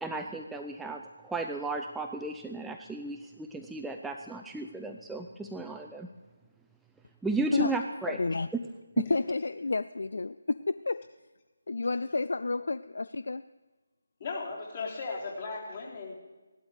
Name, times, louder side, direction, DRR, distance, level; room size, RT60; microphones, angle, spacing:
voice 1, 0.0-6.1 7.2-8.2, right 2 dB, 5° right, 3 dB, 0.4 m, -34 dB
voice 2, 8.1-8.5 9.0-11.1 11.7-13.4, left 3 dB, 65° left, 15 dB, 0.3 m, -30 dB
voice 3, 14.2-16.2, left 4 dB, 40° left, -3 dB, 3.7 m, -37 dB
16.0 x 12.0 x 4.9 m, 1.2 s
figure-of-eight pair, 155°, 0 cm